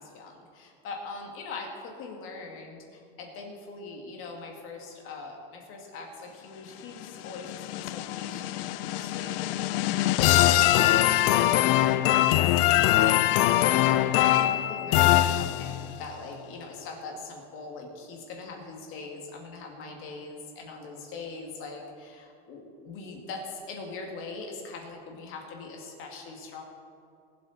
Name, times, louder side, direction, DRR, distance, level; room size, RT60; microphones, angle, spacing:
voice 1, 0.0-26.6, left 3 dB, 45° left, 1 dB, 2.3 m, -42 dB
sound 1, 7.0-15.9, left 14 dB, 70° left, 0.5 m, -23 dB
21.0 x 7.9 x 4.3 m, 2.4 s
supercardioid pair, 140°, 29 cm